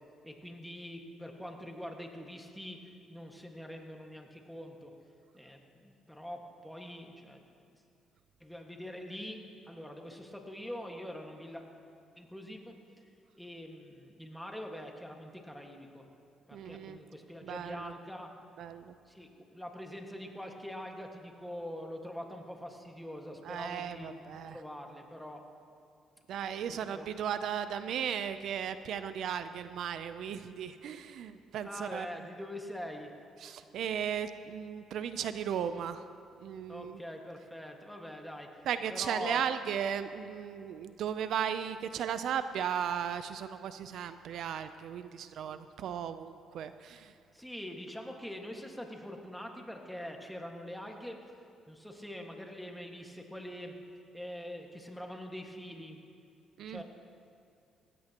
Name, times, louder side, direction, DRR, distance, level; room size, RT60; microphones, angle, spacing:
voice 1, 0.2-2.8 3.1-4.9 5.3-7.4 7.7-7.8 8.4-11.6 12.2-12.8 13.4-16.0 16.5-18.3 19.1-25.4 26.7-27.1 31.6-33.1 36.7-38.6 38.9-39.4 47.3-51.2 51.7-53.7 54.1-56.0 56.7-56.8, equal, 5° left, 2 dB, 1.7 m, -44 dB
voice 2, 16.5-17.0 17.4-17.9 18.6-18.9 23.4-24.6 26.3-32.1 33.4-36.1 36.4-37.0 38.7-47.1 56.6-56.8, right 8 dB, 70° right, 11 dB, 0.5 m, -36 dB
19.0 x 16.5 x 3.0 m, 2.5 s
cardioid pair, 95°, 0 cm